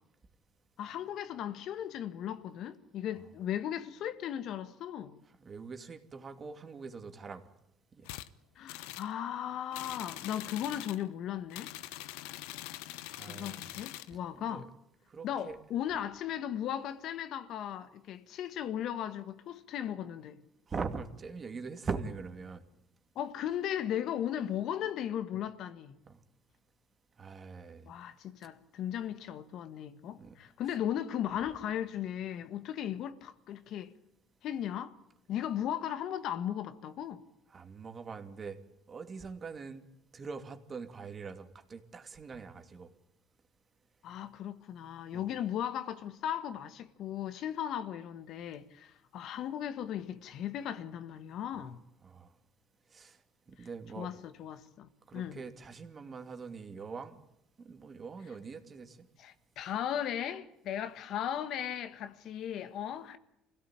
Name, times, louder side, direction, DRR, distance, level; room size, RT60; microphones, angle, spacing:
voice 1, 0.8-5.2 8.6-11.7 13.2-14.7 15.2-20.4 23.1-26.0 27.8-33.9 34.4-35.0 35.3-37.2 44.0-51.8 54.0-55.4 59.2-63.2, left 10 dB, 65° left, 1.6 m, -37 dB
voice 2, 5.3-7.4 7.9-8.1 13.1-13.7 14.3-14.6 15.1-15.6 20.7-22.6 26.1-26.2 27.2-27.9 30.1-30.4 37.5-38.6 38.9-39.8 40.1-42.9 45.1-45.2 51.5-51.7 52.0-52.3 52.9-53.2 53.5-54.1 55.1-57.2 57.6-59.1, right 5 dB, 35° right, 2.6 m, -42 dB
sound 1, 8.0-8.3 8.7-9.1 9.7-11.0 11.5-14.1, left 17 dB, 90° left, 0.9 m, -44 dB
25.0 x 17.0 x 9.0 m
supercardioid pair, 100°, 0 cm